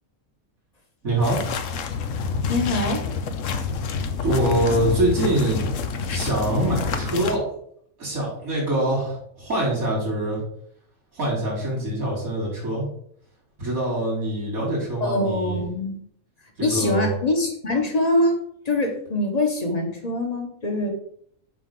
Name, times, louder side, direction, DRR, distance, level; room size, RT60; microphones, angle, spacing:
voice 1, 1.0-1.4 4.2-5.8 6.1-7.4 8.0-10.4 11.1-12.8 13.6-15.6 16.6-17.1, right 1 dB, 90° right, -4 dB, 4.4 m, -24 dB
sound 1, 1.2-7.4, left 5 dB, 70° left, 1.1 m, -27 dB
voice 2, 2.2-3.1 15.0-16.0 16.6-18.4 18.6-20.9, left 1 dB, 30° left, 2 dB, 1.4 m, -24 dB
8.4 x 5.4 x 3.8 m, 0.67 s
omnidirectional pair, 1.4 m